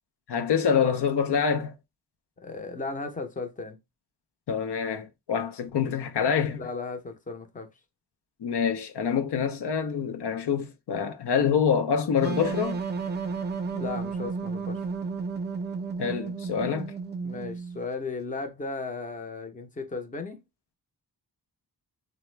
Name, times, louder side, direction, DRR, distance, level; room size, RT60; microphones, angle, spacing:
voice 1, 0.3-1.8 4.5-6.6 8.4-12.8 16.0-16.9, left 7 dB, 80° left, 0.6 m, -26 dB
voice 2, 2.4-3.8 6.6-7.7 13.7-14.9 17.2-20.4, left 3 dB, 20° left, 0.6 m, -35 dB
sound 1, 12.2-17.8, right 5 dB, 25° right, 0.5 m, -32 dB
3.3 x 2.1 x 3.1 m
wide cardioid pair, 85°, 40 cm